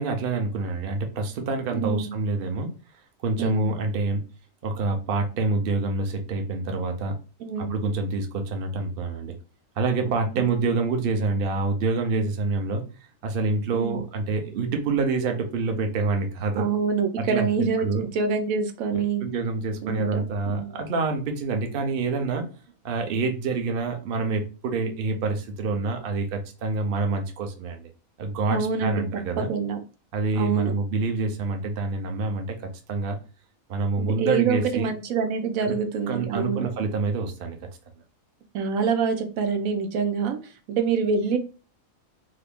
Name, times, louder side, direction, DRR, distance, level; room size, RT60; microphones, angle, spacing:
voice 1, 0.0-2.7 3.2-4.2 4.6-7.2 7.6-9.3 9.8-12.8 13.2-16.6 17.2-18.0 18.9-22.5 22.8-27.9 28.2-29.5 30.1-32.6 32.9-33.2 33.7-34.9 35.7-35.8 36.1-37.6, right 3 dB, 55° right, 4 dB, 0.7 m, -27 dB
voice 2, 1.7-2.1 3.4-3.7 7.4-7.8 13.7-14.0 16.6-19.2 19.8-20.9 28.5-29.2 29.5-29.8 30.4-30.7 34.0-36.7 38.5-41.4, right 5 dB, 85° right, 6 dB, 1.0 m, -26 dB
2.8 x 2.5 x 3.4 m, 0.34 s
omnidirectional pair, 1.4 m